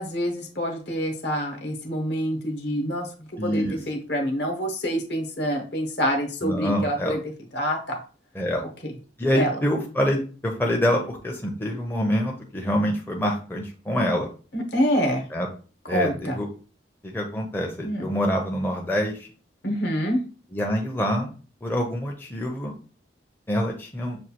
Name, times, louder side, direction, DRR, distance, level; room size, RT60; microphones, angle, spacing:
voice 1, 0.0-3.1 3.4-7.2 7.5-8.0 8.8-8.9 9.3-9.6 14.5-15.2 15.9-16.4 17.8-18.1 19.6-20.2, equal, 65° left, 3 dB, 1.0 m, -26 dB
voice 2, 3.4-3.8 6.4-7.2 8.4-8.6 9.2-14.3 15.3-15.5 15.9-16.5 17.0-19.3 20.5-21.3 21.6-22.7 23.5-24.2, equal, 10° left, 0 dB, 0.5 m, -26 dB
6.2 x 2.3 x 2.8 m, 0.38 s
head